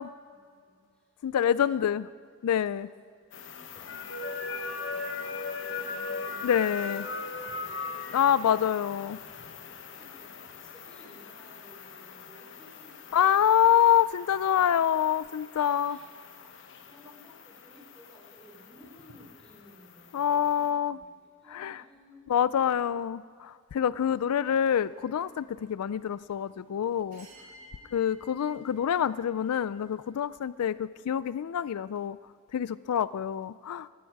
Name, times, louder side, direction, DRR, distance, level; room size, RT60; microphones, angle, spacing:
voice 1, 0.2-1.6 2.8-3.3 3.7-7.0 7.3-8.1 9.9-13.7 15.9-16.1 16.9-22.7 27.2-28.0, equal, 5° left, -3 dB, 3.6 m, -57 dB
voice 2, 1.2-2.1 2.4-2.9 6.4-7.0 8.1-9.2 13.1-16.0 20.1-21.0 21.5-21.8 22.3-27.3 27.9-32.2 32.5-33.9, left 9 dB, 85° left, 17 dB, 0.4 m, -26 dB
sound 1, 3.3-20.7, left 4 dB, 55° left, 1.0 m, -40 dB
sound 2, 24.7-30.1, right 1 dB, 35° right, 3.1 m, -57 dB
17.5 x 13.5 x 4.7 m, 2.1 s
head